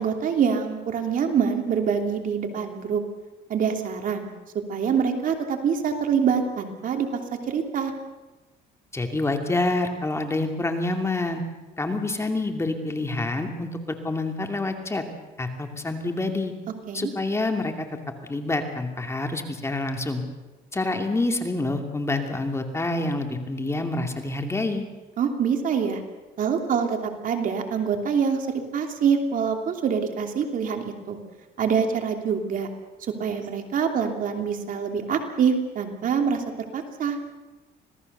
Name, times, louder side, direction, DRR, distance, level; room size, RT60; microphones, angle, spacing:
voice 1, 0.0-3.0 3.5-4.3 4.7-7.9 16.9-17.1 25.2-26.0 26.4-28.5 28.7-31.2 31.6-32.7 33.2-37.2, right 6 dB, 55° right, 4 dB, 3.0 m, -25 dB
voice 2, 8.9-11.4 11.8-15.0 15.4-16.5 16.9-17.9 18.3-20.2 20.7-24.9, left 2 dB, 15° left, 4 dB, 2.6 m, -27 dB
26.5 x 18.0 x 6.7 m, 1.1 s
cardioid pair, 110°, 17 cm